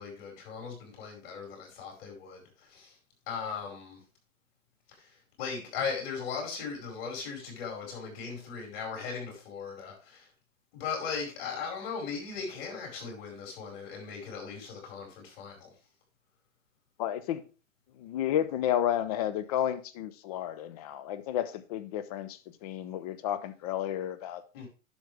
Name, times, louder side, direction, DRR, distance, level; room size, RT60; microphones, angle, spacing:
voice 1, 0.0-3.0 3.3-4.0 4.9-10.3 10.7-15.7 24.5-24.7, left 5 dB, 45° left, 5.0 m, -38 dB
voice 2, 17.0-17.4 18.0-24.6, left 11 dB, 30° left, 0.6 m, -32 dB
10.5 x 6.7 x 3.4 m
hypercardioid pair, 135°, 41 cm